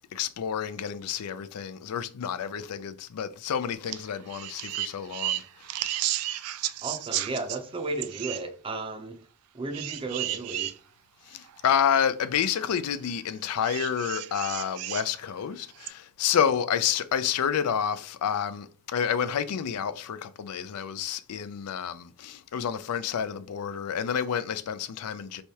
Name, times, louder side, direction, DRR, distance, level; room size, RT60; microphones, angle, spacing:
voice 1, 0.1-5.4 11.3-25.4, left 8 dB, 85° left, 0.4 m, -29 dB
sound 1, 3.9-4.0 4.3-7.6 8.0-8.4 9.7-10.7 11.5-11.6 13.6-15.1 15.8-15.9, right 14 dB, 70° right, 0.3 m, -33 dB
voice 2, 6.8-9.2 9.5-10.7, right 3 dB, 25° right, 0.6 m, -34 dB
4.5 x 3.3 x 2.8 m
head